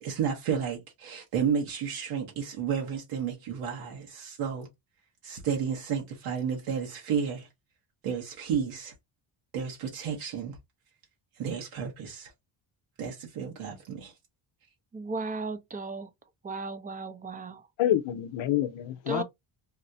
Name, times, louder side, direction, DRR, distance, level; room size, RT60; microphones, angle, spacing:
voice 1, 0.0-4.7 5.2-7.5 8.0-8.9 9.5-10.6 11.4-12.3 13.0-14.1, right 7 dB, 85° right, 1.1 m, -32 dB
voice 2, 14.9-16.1 16.4-17.7 19.1-19.2, right 2 dB, 15° right, 0.5 m, -35 dB
voice 3, 17.8-19.2, left 12 dB, 70° left, 0.7 m, -27 dB
4.2 x 2.0 x 2.6 m
cardioid pair, 100°, 49 cm